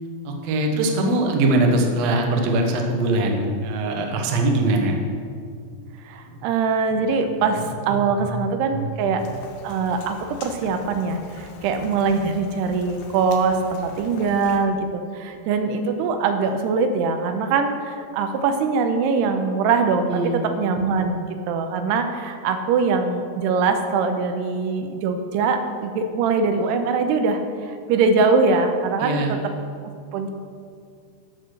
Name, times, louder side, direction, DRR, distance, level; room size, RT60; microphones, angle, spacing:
voice 1, 0.2-5.0 6.3-6.4 7.9-8.3 8.7-8.9 20.1-20.4 29.0-29.3, right 2 dB, 70° right, 2 dB, 1.6 m, -22 dB
voice 2, 6.0-9.2 9.6-29.4 30.1-30.3, right 4 dB, 85° right, 7 dB, 2.8 m, -22 dB
Rain, 9.2-14.6, left 4 dB, 80° left, 3.1 m, -43 dB
12.0 x 6.6 x 6.6 m, 2.2 s
omnidirectional pair, 4.8 m